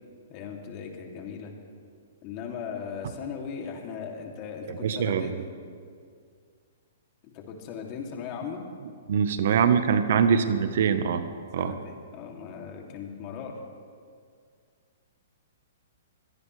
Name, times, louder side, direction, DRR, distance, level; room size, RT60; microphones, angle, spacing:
voice 1, 0.3-1.5 2.2-5.4 7.2-8.6 11.6-13.6, left 6 dB, 40° left, 1 dB, 2.7 m, -38 dB
voice 2, 4.7-5.4 9.1-11.3 11.5-11.7, right 7 dB, 65° right, 10 dB, 1.1 m, -23 dB
23.5 x 17.5 x 3.3 m, 2.1 s
hypercardioid pair, 130°, 0 cm